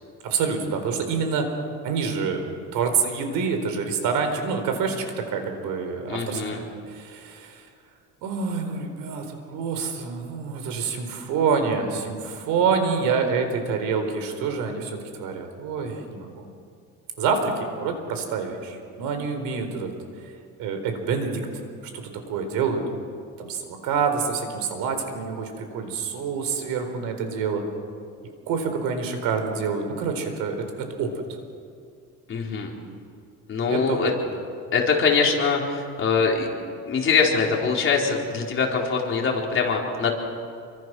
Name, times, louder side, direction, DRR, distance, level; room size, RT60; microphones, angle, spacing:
voice 1, 0.2-1.5 1.8-2.4 2.7-7.6 8.2-16.5 17.2-19.9 20.6-21.4 21.9-22.8 23.4-27.6 28.5-30.6 31.0-31.1 33.7-34.1, right 5 dB, 85° right, 6 dB, 4.3 m, -27 dB
voice 2, 6.1-6.6 32.3-32.7 33.5-34.1 34.7-36.5 36.9-40.1, left 5 dB, 35° left, -1 dB, 4.3 m, -23 dB
29.0 x 24.0 x 6.3 m, 2.3 s
cardioid pair, 145°, 33 cm